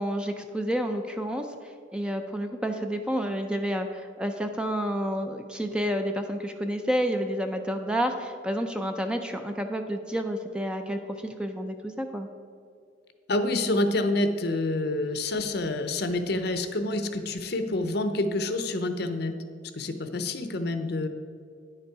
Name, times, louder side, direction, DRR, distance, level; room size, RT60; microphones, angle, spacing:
voice 1, 0.0-12.3, equal, 5° right, 5 dB, 0.4 m, -30 dB
voice 2, 13.3-19.3 19.7-21.1, left 2 dB, 55° left, 8 dB, 0.7 m, -27 dB
10.0 x 6.6 x 4.6 m, 2.3 s
head